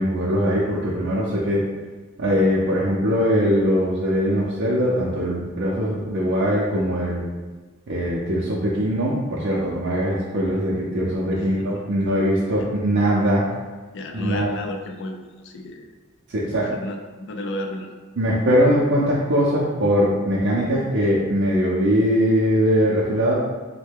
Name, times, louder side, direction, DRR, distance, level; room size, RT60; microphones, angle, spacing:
voice 1, 0.0-1.6 2.2-7.2 7.9-13.5 14.1-14.5 16.3-16.7 18.2-23.3, equal, 60° right, -6 dB, 0.5 m, -21 dB
voice 2, 11.3-11.9 12.6-12.7 13.9-15.9 16.6-17.9, left 1 dB, 60° left, 3 dB, 0.4 m, -33 dB
3.1 x 2.2 x 3.4 m, 1.3 s
head